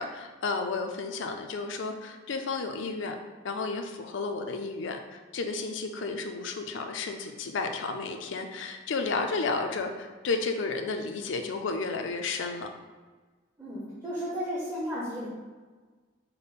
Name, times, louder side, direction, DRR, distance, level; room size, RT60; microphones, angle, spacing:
voice 1, 0.0-3.2 3.4-12.7, left 4 dB, 65° left, 5 dB, 0.5 m, -32 dB
voice 2, 13.6-15.3, equal, 15° right, -8 dB, 0.8 m, -33 dB
5.3 x 2.1 x 4.1 m, 1.4 s
head